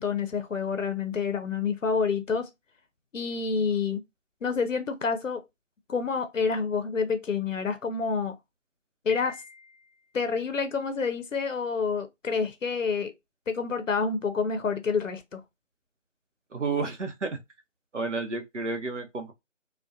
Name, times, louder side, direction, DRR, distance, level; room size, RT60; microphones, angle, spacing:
voice 1, 0.0-2.5 3.1-4.0 4.4-5.4 5.9-8.3 9.0-9.4 10.1-13.1 13.5-15.4, left 5 dB, 80° left, 0.6 m, -28 dB
Piano, 9.1-10.1, left 5 dB, 45° left, 0.7 m, -44 dB
voice 2, 16.5-17.4 17.9-19.3, right 4 dB, 65° right, 0.7 m, -31 dB
2.3 x 2.2 x 2.6 m
figure-of-eight pair, 170°, 38 cm